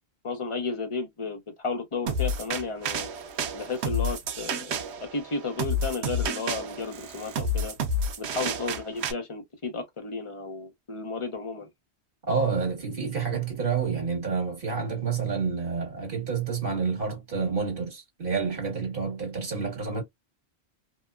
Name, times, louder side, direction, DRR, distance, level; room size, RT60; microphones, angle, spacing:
voice 1, 0.2-3.1 3.5-7.8 8.2-11.7, left 4 dB, 35° left, 0.8 m, -33 dB
sound 1, 2.1-9.1, equal, 90° right, 0.9 m, -30 dB
voice 2, 12.3-20.0, right 5 dB, 50° right, 1.7 m, -29 dB
2.9 x 2.1 x 2.2 m
omnidirectional pair, 1.1 m